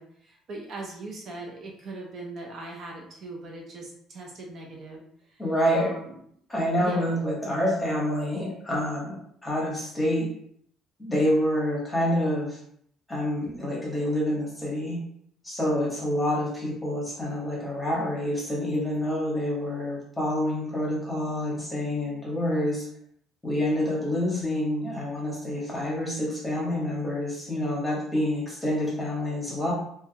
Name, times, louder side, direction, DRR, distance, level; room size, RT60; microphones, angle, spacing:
voice 1, 0.0-5.4 5.7-6.1 6.8-7.1, right 2 dB, 45° right, -1 dB, 0.5 m, -40 dB
voice 2, 5.4-5.9 6.5-9.2 9.4-10.3 11.0-12.6 13.1-15.0 15.4-22.9 23.4-29.7, left 1 dB, 10° left, -4 dB, 0.9 m, -27 dB
3.1 x 2.3 x 2.7 m, 0.69 s
cardioid pair, 155°, 0 cm